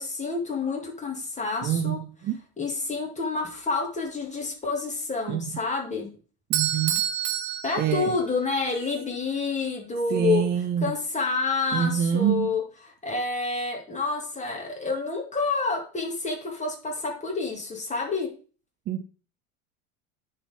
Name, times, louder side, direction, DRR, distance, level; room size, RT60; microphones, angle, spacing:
voice 1, 0.0-2.0 2.6-6.1 7.6-10.5 10.8-12.6 13.0-18.3, left 4 dB, 15° left, 2.3 m, -28 dB
voice 2, 1.6-2.4 5.3-5.6 6.5-7.0 7.8-8.2 10.1-11.0 11.7-12.6 18.9-19.0, right 9 dB, 25° right, 0.4 m, -26 dB
Bell / Doorbell, 6.5-8.6, right 11 dB, 45° right, 0.8 m, -28 dB
10.5 x 4.1 x 3.7 m
hypercardioid pair, 100°, 45 cm